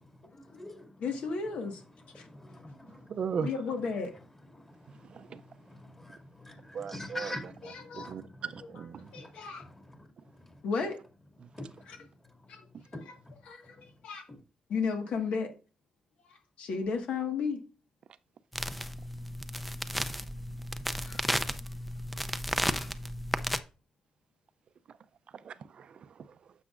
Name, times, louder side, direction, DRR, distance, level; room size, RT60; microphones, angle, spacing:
voice 1, 0.2-1.0 2.1-3.1 4.5-8.4 9.0-10.1 10.3-10.6 11.5-11.9 12.9-13.3 14.3-14.4, left 1 dB, 15° left, 2.0 m, -46 dB
voice 2, 1.0-1.8 2.1-2.3 3.4-4.1 7.6-8.1 9.1-9.6 10.6-11.0 11.9-12.0 12.5-12.6 13.0-13.1 13.4-13.7 14.0-14.2 14.7-15.5 16.6-17.6 21.0-21.2 22.8-22.9, left 5 dB, 80° left, 1.6 m, -33 dB
voice 3, 3.1-3.5 5.0-5.4 6.7-7.3 7.9-9.1 11.4-11.5 12.7-12.8 24.9-25.0 25.3-26.5, right 6 dB, 55° right, 0.5 m, -38 dB
sound 1, 18.5-23.6, equal, ahead, 0.5 m, -33 dB
9.6 x 7.0 x 2.5 m
cardioid pair, 110°, 2 cm